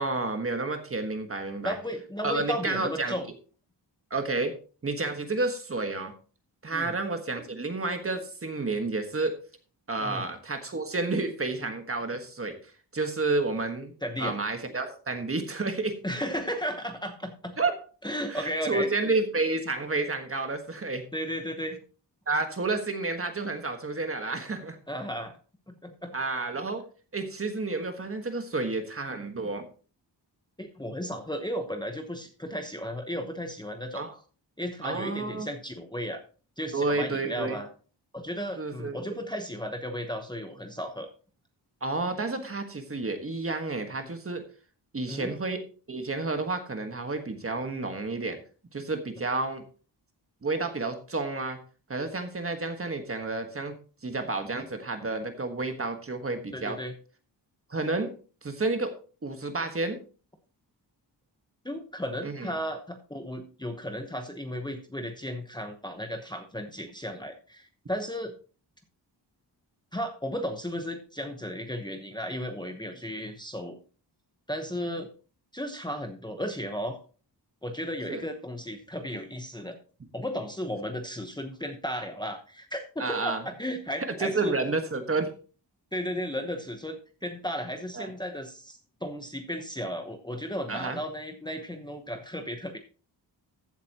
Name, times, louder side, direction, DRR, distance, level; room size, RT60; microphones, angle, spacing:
voice 1, 0.0-1.7 2.2-3.1 4.1-4.5 4.8-6.1 6.6-9.4 9.9-12.6 12.9-13.9 14.2-16.0 17.6-17.7 18.3-21.1 22.3-24.8 26.1-26.8 27.1-29.6 33.9-34.1 34.8-35.5 36.7-37.6 38.6-39.1 41.8-44.4 44.9-48.4 48.7-49.6 50.4-51.6 51.9-53.8 54.0-56.8 57.7-58.1 58.4-58.9 59.2-60.0 62.2-62.6 78.1-78.2 83.0-83.4 84.0-85.3 87.9-88.1 90.7-91.0, right 3 dB, 30° right, 6 dB, 1.5 m, -30 dB
voice 2, 1.6-3.3 6.7-7.0 10.0-10.2 14.0-14.3 16.0-17.6 18.0-18.9 21.1-21.8 24.9-25.3 25.7-26.1 30.6-34.0 34.6-36.2 36.6-37.7 38.1-41.1 45.1-45.3 56.5-56.9 61.6-68.3 69.9-73.8 74.5-75.1 75.5-77.0 77.6-79.7 80.1-84.6 85.9-92.8, equal, 10° left, 4 dB, 1.0 m, -34 dB
15.0 x 8.2 x 2.9 m, 0.37 s
wide cardioid pair, 170°, 43 cm